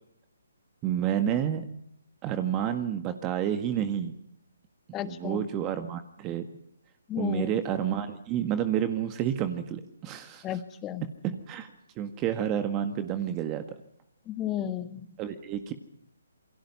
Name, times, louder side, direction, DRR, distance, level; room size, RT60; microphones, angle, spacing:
voice 1, 0.8-1.6 2.2-4.1 5.0-6.5 7.2-10.4 11.3-11.7 12.0-13.6 15.2-15.7, right 10 dB, 20° right, 9 dB, 1.7 m, -29 dB
voice 2, 4.9-5.4 7.1-7.5 10.4-11.0 14.3-15.1, left 10 dB, 20° left, 11 dB, 1.5 m, -33 dB
28.0 x 23.0 x 5.6 m, 0.71 s
figure-of-eight pair, 145°, 0 cm